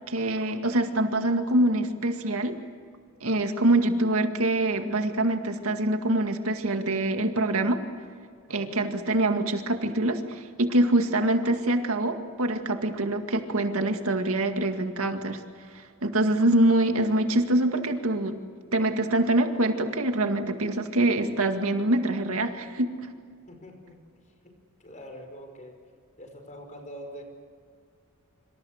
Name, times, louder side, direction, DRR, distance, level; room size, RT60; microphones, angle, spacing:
voice 1, 0.1-2.6 3.2-7.8 8.5-15.4 16.0-18.4 18.7-22.9, right 1 dB, 75° right, 6 dB, 2.1 m, -25 dB
voice 2, 23.5-24.0 24.8-25.7 26.2-27.2, equal, 35° left, 4 dB, 5.3 m, -44 dB
26.5 x 26.5 x 6.6 m, 2.1 s
head